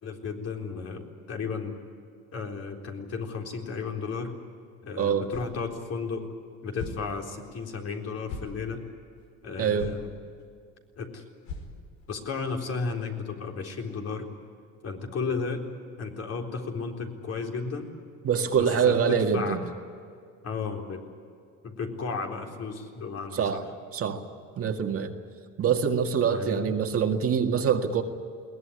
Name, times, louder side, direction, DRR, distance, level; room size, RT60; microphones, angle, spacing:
voice 1, 0.0-1.8 2.3-4.3 4.8-6.2 6.6-8.8 9.4-10.1 11.0-11.2 12.1-14.3 14.8-15.6 16.0-17.9 18.5-19.6 20.4-21.0 21.6-23.4 26.3-26.7, left 4 dB, 45° left, 1 dB, 4.1 m, -34 dB
voice 2, 5.0-5.3 9.6-9.9 18.2-19.6 23.3-23.6 23.9-24.2 24.6-25.1 25.6-28.0, right 7 dB, 45° right, 4 dB, 2.0 m, -25 dB
sound 1, 5.3-5.6 6.0-6.1 6.7-7.0 7.6-7.7 8.2-8.6 9.2-9.3 9.8-10.0 10.4-10.5 10.8-10.9 11.4-12.0, left 3 dB, 75° left, 5.0 m, -39 dB
22.0 x 19.0 x 10.0 m, 2.3 s
cardioid pair, 110°, 33 cm